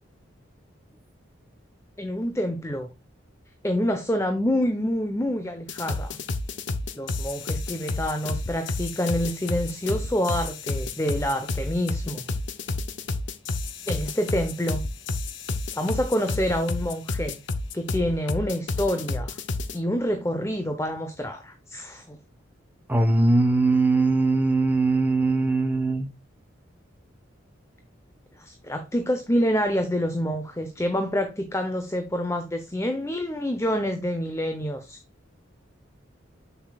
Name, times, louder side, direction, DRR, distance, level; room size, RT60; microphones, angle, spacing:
voice 1, 2.0-2.9 3.6-6.2 6.9-12.3 13.9-14.8 15.7-17.4 17.7-19.4 19.7-22.2 28.4-35.0, equal, 15° left, 0.8 m, -27 dB
sound 1, 5.7-19.8, left 2 dB, 70° left, 0.8 m, -30 dB
voice 2, 22.9-26.1, right 2 dB, 10° right, 1.0 m, -21 dB
7.2 x 7.0 x 2.3 m
head